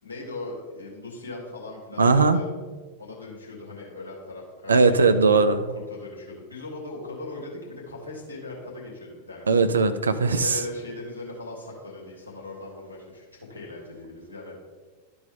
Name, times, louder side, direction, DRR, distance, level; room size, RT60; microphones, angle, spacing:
voice 1, 0.0-2.5 3.0-5.0 5.7-9.7 10.3-13.2 13.5-14.5, left 2 dB, 75° left, -3 dB, 2.4 m, -39 dB
voice 2, 2.0-2.4 4.7-5.7 9.5-10.5, right 4 dB, 75° right, 10 dB, 0.5 m, -19 dB
12.0 x 4.3 x 3.6 m, 1.4 s
figure-of-eight pair, 90°, 0 cm